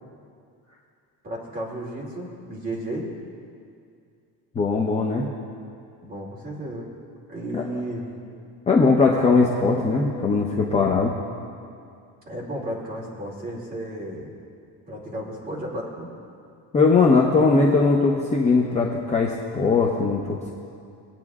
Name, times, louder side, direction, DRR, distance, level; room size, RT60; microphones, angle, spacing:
voice 1, 1.2-3.1 6.0-6.9 7.3-8.1 9.2-9.3 12.3-14.3 14.9-16.1, right 1 dB, 25° right, -4 dB, 2.5 m, -33 dB
voice 2, 4.5-5.3 7.5-7.6 8.7-11.1 16.7-20.5, left 4 dB, 20° left, -2 dB, 0.7 m, -20 dB
21.5 x 9.0 x 2.4 m, 2.4 s
cardioid pair, 160°, 38 cm